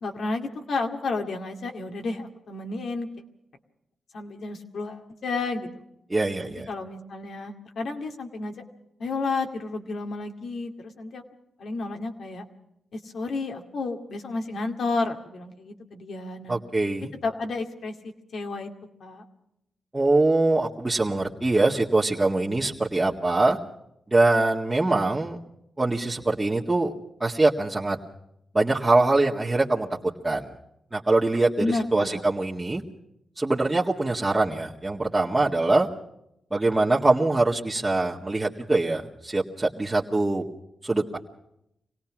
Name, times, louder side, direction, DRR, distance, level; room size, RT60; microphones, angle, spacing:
voice 1, 0.0-3.1 4.1-5.7 6.4-8.5 9.0-11.2 11.6-12.4 12.9-16.6 17.2-18.7 19.0-19.2 31.6-32.2, left 3 dB, 70° left, 4 dB, 2.2 m, -31 dB
voice 2, 6.1-6.7 16.5-17.1 19.9-23.6 24.1-25.4 25.8-26.9 27.2-28.0 28.5-30.5 30.9-32.8 33.4-35.9 36.5-40.4 40.8-41.2, right 2 dB, 25° right, -4 dB, 1.9 m, -23 dB
25.0 x 18.0 x 6.1 m, 0.80 s
supercardioid pair, 45°, 0 cm